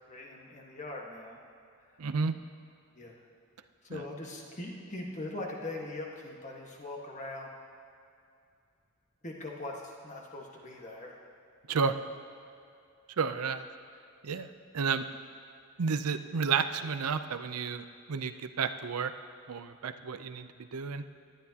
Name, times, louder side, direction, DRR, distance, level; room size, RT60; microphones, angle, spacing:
voice 1, 0.1-1.4 1.9-2.1 2.9-3.2 3.8-7.5 9.2-11.2, left 2 dB, 35° left, -1 dB, 1.5 m, -41 dB
voice 2, 2.0-2.3 3.9-4.0 11.7-12.0 13.2-13.6 14.2-15.0 15.8-19.1 19.5-21.0, right 5 dB, 85° right, 10 dB, 0.6 m, -31 dB
18.5 x 12.0 x 2.9 m, 2.5 s
head